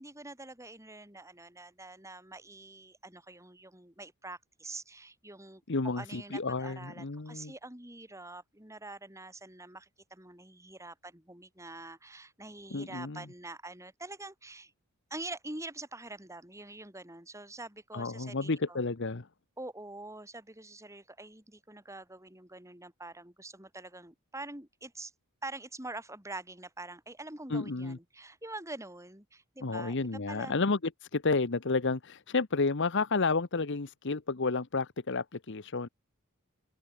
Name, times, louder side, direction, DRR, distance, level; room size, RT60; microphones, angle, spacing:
voice 1, 0.0-5.6 6.0-14.7 15.1-18.8 19.6-25.1 25.4-30.6, right 2 dB, 15° right, 7.1 m, -45 dB
voice 2, 5.7-7.5 12.7-13.2 17.9-19.3 27.5-28.0 29.6-35.9, left 3 dB, 55° left, 1.0 m, -31 dB
head